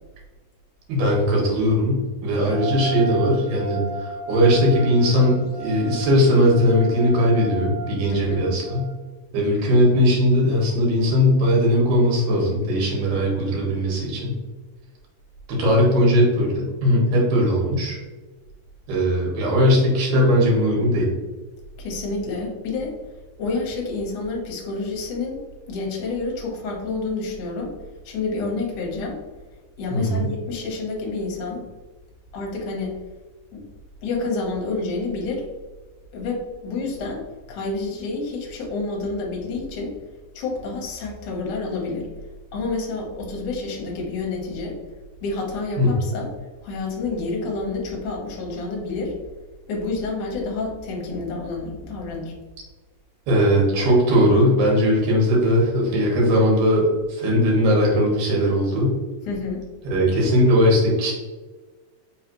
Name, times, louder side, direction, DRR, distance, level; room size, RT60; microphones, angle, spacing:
voice 1, 0.9-8.9 9.3-14.4 15.5-18.0 18.9-21.1 29.9-30.3 45.8-46.1 53.3-59.0 59.9-61.1, equal, 75° right, -2 dB, 2.9 m, -19 dB
sound 1, 2.5-8.9, right 6 dB, 90° right, 2.4 m, -34 dB
voice 2, 8.1-8.4 21.8-22.9 23.4-25.4 25.7-27.7 28.1-29.2 29.8-31.6 32.3-32.9 33.5-33.7 34.0-35.4 36.1-37.2 37.5-40.0 40.4-42.1 42.5-44.8 45.2-46.3 46.6-49.1 49.7-52.4 59.3-59.6, left 3 dB, 70° left, -1 dB, 2.4 m, -28 dB
5.6 x 3.2 x 2.9 m, 1.3 s
omnidirectional pair, 4.0 m